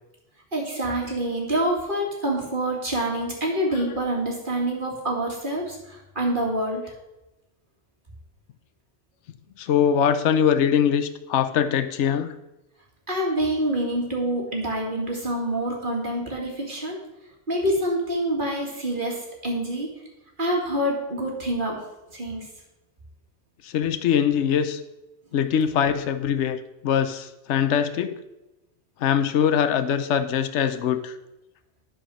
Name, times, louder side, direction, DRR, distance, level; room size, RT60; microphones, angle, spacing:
voice 1, 0.5-6.8 13.1-17.0 17.5-19.9 20.4-21.8 22.1-22.5, right 1 dB, 45° right, -1 dB, 2.4 m, -26 dB
voice 2, 9.6-12.3 23.6-24.8 25.3-28.2 29.0-31.1, left 8 dB, 75° left, 10 dB, 1.0 m, -22 dB
11.5 x 4.8 x 6.2 m, 0.96 s
omnidirectional pair, 1.3 m